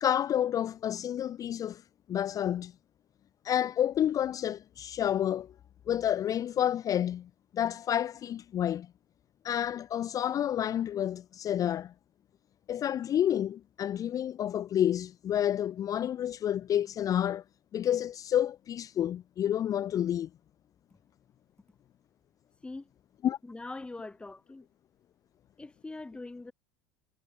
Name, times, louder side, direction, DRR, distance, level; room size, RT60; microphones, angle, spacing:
voice 1, 0.0-1.8 2.1-2.7 3.4-5.5 5.9-8.9 9.4-11.9 12.7-17.4 17.7-20.3 23.2-23.4, left 10 dB, 40° left, 0.4 m, -29 dB
voice 2, 23.4-24.7 25.6-26.5, left 2 dB, 10° left, 0.9 m, -42 dB
supercardioid pair, 90°, 9 cm